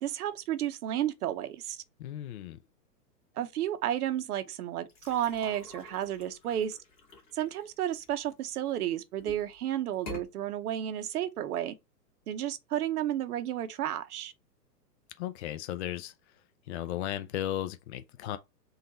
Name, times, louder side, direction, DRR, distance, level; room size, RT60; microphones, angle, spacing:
voice 1, 0.0-1.8 3.4-6.8 7.3-11.7 12.3-14.3, right 11 dB, 60° right, 0.9 m, -32 dB
voice 2, 2.0-2.6 15.2-16.1 16.7-18.4, left 12 dB, 45° left, 0.6 m, -35 dB
sound 1, 4.9-8.7 9.2-9.6 9.9-10.3, left 3 dB, 25° left, 1.8 m, -47 dB
4.0 x 2.6 x 3.9 m
hypercardioid pair, 125°, 50 cm